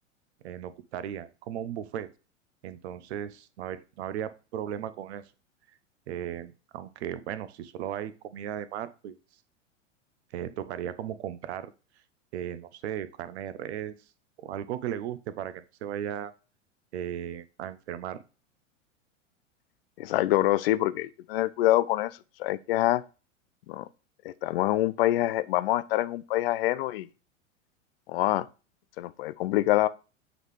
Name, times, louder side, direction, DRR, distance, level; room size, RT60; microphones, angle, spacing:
voice 1, 0.4-2.1 2.6-5.3 6.1-9.2 10.3-11.7 12.3-13.9 14.4-16.3 16.9-18.2, right 10 dB, 55° right, 0.7 m, -36 dB
voice 2, 20.0-23.0 23.7-23.9 24.2-27.1 28.1-28.5 29.0-29.9, left 15 dB, 50° left, 0.4 m, -26 dB
7.9 x 4.0 x 3.1 m
figure-of-eight pair, 95°, 38 cm